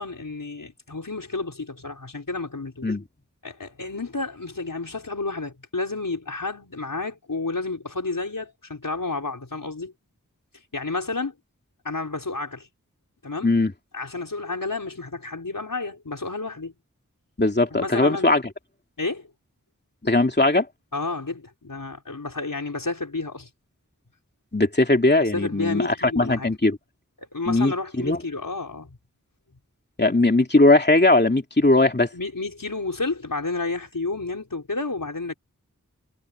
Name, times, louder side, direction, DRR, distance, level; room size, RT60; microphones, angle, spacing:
voice 1, 0.0-2.9 3.4-9.9 10.7-11.3 11.8-12.7 13.2-13.5 13.9-16.7 17.7-18.4 19.0-19.3 20.9-23.5 25.3-26.5 27.3-29.0 32.1-35.3, left 3 dB, 85° left, 5.0 m, -31 dB
voice 2, 17.4-18.4 20.0-20.7 24.5-26.8 27.5-28.2 30.0-32.1, left 2 dB, 30° left, 2.7 m, -19 dB
wide cardioid pair, 50°, 32 cm